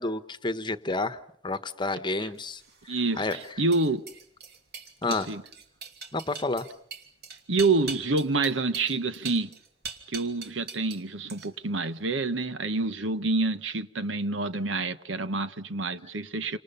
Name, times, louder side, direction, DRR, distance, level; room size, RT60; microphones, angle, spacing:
voice 1, 0.0-2.6 3.2-3.4 5.0-5.3 6.1-6.7, left 2 dB, 25° left, 1.2 m, -30 dB
sound 1, 2.5-11.0 11.3-11.8, right 5 dB, 55° right, 3.1 m, -41 dB
voice 2, 2.9-4.0 5.0-5.4 7.5-9.5 10.1-16.6, right 3 dB, 75° right, 1.3 m, -27 dB
29.0 x 26.5 x 5.7 m
head